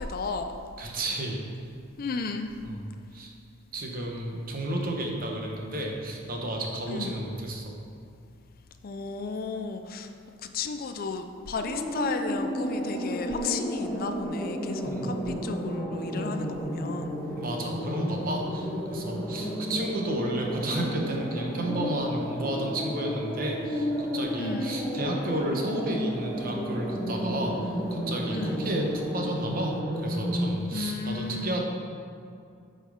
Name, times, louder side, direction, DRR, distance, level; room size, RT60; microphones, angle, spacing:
voice 1, 0.0-0.6 2.0-2.6 6.9-7.2 8.8-10.1 10.4-17.2 19.4-19.8 24.4-24.8 28.3-28.6 30.7-31.6, left 4 dB, 45° left, 6 dB, 0.4 m, -34 dB
voice 2, 0.8-1.4 2.6-2.8 3.1-3.3 3.7-7.7 14.8-15.1 17.3-31.6, right 1 dB, 45° right, 1 dB, 0.9 m, -32 dB
sound 1, 11.6-30.5, equal, 5° left, 0.8 m, -32 dB
8.2 x 4.3 x 4.8 m, 2.4 s
head